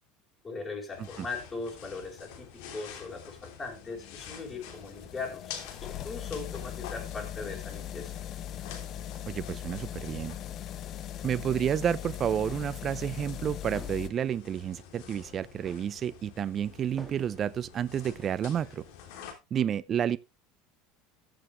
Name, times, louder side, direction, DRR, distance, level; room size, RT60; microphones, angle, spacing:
voice 1, 0.4-5.5 5.8-8.1, left 4 dB, 20° left, 4.8 m, -39 dB
sound 1, 0.9-19.3, left 8 dB, 75° left, 3.3 m, -48 dB
sound 2, 3.8-14.1, left 11 dB, 45° left, 0.7 m, -40 dB
voice 2, 9.3-10.4 11.2-18.8 19.5-20.2, right 9 dB, 35° right, 0.5 m, -30 dB
sound 3, 12.4-12.8 13.7-14.2 15.6-16.0 17.0-17.4 18.2-18.5, right 2 dB, 15° right, 1.7 m, -49 dB
15.0 x 6.9 x 3.3 m
supercardioid pair, 115°, 0 cm